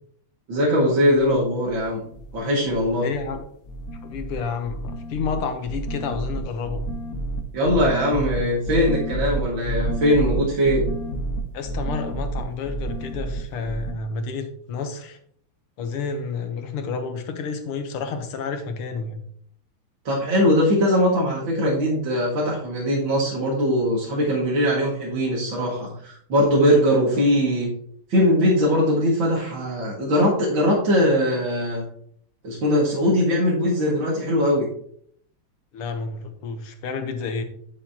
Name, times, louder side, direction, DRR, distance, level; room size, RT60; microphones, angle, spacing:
voice 1, 0.5-2.0 2.3-3.1 7.5-10.9 20.0-27.7 28.1-31.8 32.4-34.7, equal, 60° right, -6 dB, 2.8 m, -21 dB
sound 1, 1.1-1.4 1.7-2.4 2.7-3.4 3.6-13.9, right 1 dB, 50° left, 1.2 m, -30 dB
voice 2, 3.0-3.5 4.0-6.8 11.5-15.2 15.8-19.2 35.7-37.4, left 5 dB, 80° left, 7 dB, 2.0 m, -30 dB
9.9 x 7.1 x 2.9 m, 0.63 s
omnidirectional pair, 2.4 m